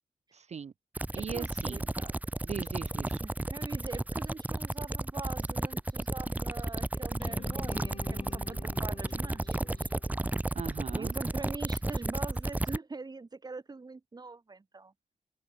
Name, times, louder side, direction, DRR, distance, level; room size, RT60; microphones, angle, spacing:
voice 1, 0.3-0.7 1.1-1.9 2.5-3.2 10.5-11.1, right 6 dB, 55° right, 0.8 m, -39 dB
sound 1, 1.0-12.8, right 2 dB, 10° right, 0.6 m, -33 dB
voice 2, 1.2-2.1 3.2-9.9 10.9-14.9, right 3 dB, 30° right, 1.7 m, -43 dB
sound 2, 7.2-11.3, left 5 dB, 45° left, 3.6 m, -48 dB
open air
wide cardioid pair, 145°, 14 cm